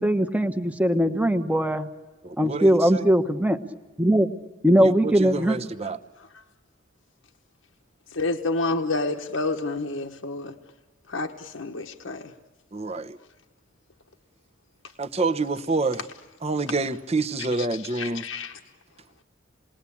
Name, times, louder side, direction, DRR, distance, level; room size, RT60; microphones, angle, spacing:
voice 1, 0.0-1.9 2.4-3.6 4.0-4.3 4.6-5.6, equal, 5° right, 8 dB, 1.1 m, -20 dB
voice 2, 2.2-3.0 4.8-6.0 12.7-13.2 15.0-16.0 16.4-18.2, right 3 dB, 30° right, 10 dB, 0.9 m, -27 dB
voice 3, 8.1-10.5 11.1-12.3 17.4-18.5, left 3 dB, 80° left, 4 dB, 1.2 m, -29 dB
28.0 x 20.5 x 8.6 m, 1.3 s
head